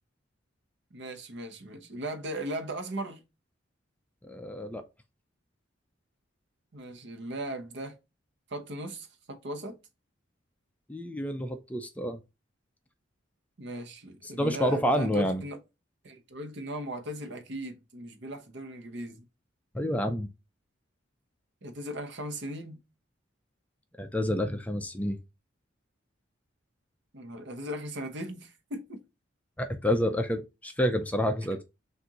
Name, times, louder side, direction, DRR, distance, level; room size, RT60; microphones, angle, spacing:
voice 1, 0.9-3.2 6.7-7.9 8.5-9.8 13.6-15.6 16.0-19.2 21.6-22.8 27.1-29.0, right 1 dB, 65° right, 0.9 m, -38 dB
voice 2, 4.3-4.9 10.9-12.2 14.4-15.4 19.7-20.3 24.0-25.2 29.6-31.6, equal, 10° left, 0.4 m, -28 dB
6.2 x 2.6 x 2.9 m
head